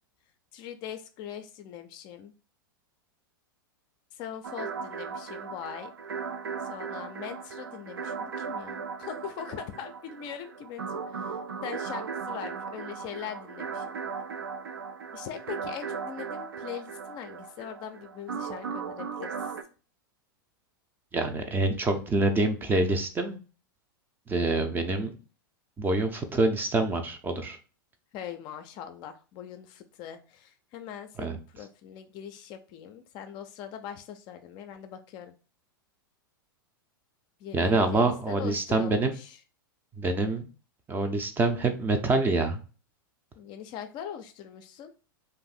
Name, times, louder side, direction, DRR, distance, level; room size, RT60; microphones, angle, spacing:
voice 1, 0.5-2.3 4.1-5.9 6.6-13.9 15.1-19.5 28.1-35.3 37.4-39.4 43.4-44.9, left 9 dB, 40° left, 8 dB, 0.4 m, -41 dB
sound 1, 4.4-19.6, right 5 dB, 85° right, 0.4 m, -37 dB
voice 2, 21.1-23.4 24.3-25.1 25.8-27.6 31.2-31.4 37.5-39.1 40.0-40.5 40.9-42.6, right 2 dB, 15° right, 6 dB, 0.5 m, -26 dB
2.6 x 2.5 x 4.0 m, 0.36 s
hypercardioid pair, 100°, 12 cm